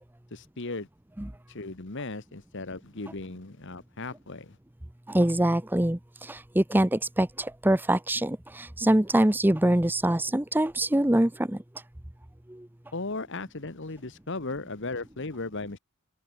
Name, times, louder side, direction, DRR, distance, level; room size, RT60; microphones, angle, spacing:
voice 1, 0.3-0.9 1.5-4.6 12.9-15.8, left 3 dB, 55° left, 1.4 m, -36 dB
voice 2, 5.1-11.6 12.5-12.7, right 1 dB, 10° right, 0.7 m, -24 dB
open air
head